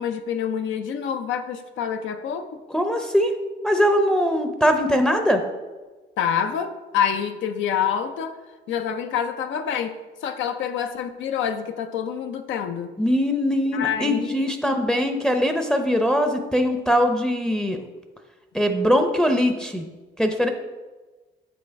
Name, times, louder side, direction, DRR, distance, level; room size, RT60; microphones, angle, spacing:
voice 1, 0.0-2.5 6.2-8.4 8.7-12.9 13.7-14.7, left 8 dB, 75° left, 8 dB, 0.5 m, -27 dB
voice 2, 2.7-3.3 3.6-5.4 13.0-17.8 18.5-19.8 20.2-20.5, equal, 5° left, 5 dB, 0.6 m, -21 dB
7.9 x 3.1 x 4.5 m, 1.2 s
cardioid pair, 90°, 20 cm